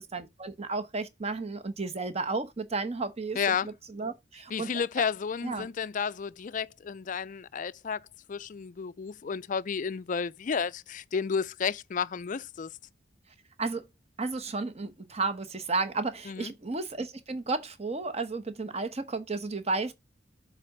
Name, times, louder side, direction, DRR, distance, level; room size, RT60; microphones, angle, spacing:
voice 1, 0.0-4.7 5.0-5.1 5.4-5.7 13.6-13.9 14.2-19.9, right 3 dB, 35° right, 0.9 m, -33 dB
voice 2, 3.4-3.7 4.5-12.8 16.3-16.5, left 6 dB, 40° left, 0.4 m, -32 dB
7.6 x 3.5 x 5.9 m
head